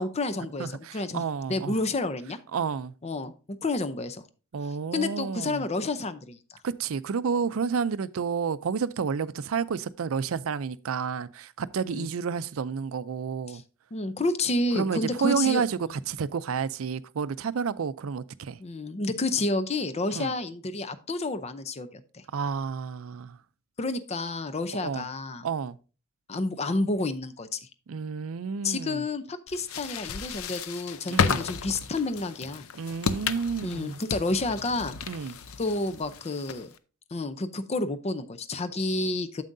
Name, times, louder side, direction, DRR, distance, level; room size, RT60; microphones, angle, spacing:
voice 1, 0.0-1.2 1.5-2.4 3.0-3.3 3.6-4.2 4.9-6.6 11.8-12.1 13.5-13.6 13.9-15.6 18.6-22.2 23.8-25.5 26.3-27.7 28.6-32.7 33.6-35.0 35.6-36.7 37.1-39.4, left 2 dB, 30° left, 0.6 m, -30 dB
voice 2, 0.6-1.8 2.5-2.9 4.5-5.6 6.6-13.6 14.8-18.6 20.2-20.3 22.3-23.4 24.7-25.0 25.4-25.8 27.9-29.0 31.1-31.4 32.7-34.0 35.1-35.4, right 6 dB, 75° right, 0.4 m, -30 dB
sound 1, 29.5-36.8, left 6 dB, 80° left, 0.6 m, -33 dB
9.0 x 7.5 x 2.6 m
head